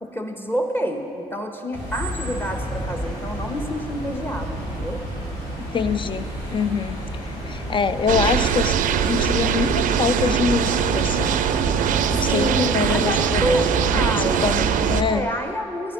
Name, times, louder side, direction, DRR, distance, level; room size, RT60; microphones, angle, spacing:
voice 1, 0.0-5.0 12.3-13.7 13.9-14.4 15.0-15.9, equal, 15° left, 4 dB, 1.1 m, -27 dB
sound 1, 1.7-15.2, equal, 85° left, 2.4 m, -30 dB
voice 2, 5.7-8.8 9.1-11.4 12.1-13.6 13.9-15.3, left 6 dB, 35° left, 13 dB, 0.4 m, -25 dB
sound 2, 8.1-15.0, right 9 dB, 60° right, 0.4 m, -22 dB
10.5 x 8.8 x 3.9 m, 2.6 s
hypercardioid pair, 50°, 15 cm